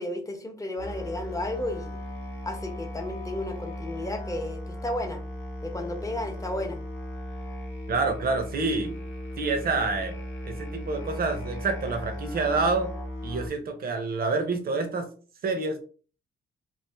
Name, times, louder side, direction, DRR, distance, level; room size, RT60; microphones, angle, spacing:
voice 1, 0.0-2.0 2.4-5.2 5.6-6.8, left 1 dB, 15° left, 3 dB, 0.9 m, -33 dB
Musical instrument, 0.8-13.5, left 1 dB, 85° left, 0.8 m, -37 dB
voice 2, 7.9-8.9 9.4-10.1 10.4-12.9 13.2-15.1 15.4-15.8, right 3 dB, 50° right, 7 dB, 0.8 m, -27 dB
3.1 x 2.4 x 3.4 m, 0.40 s
cardioid pair, 90°, 20 cm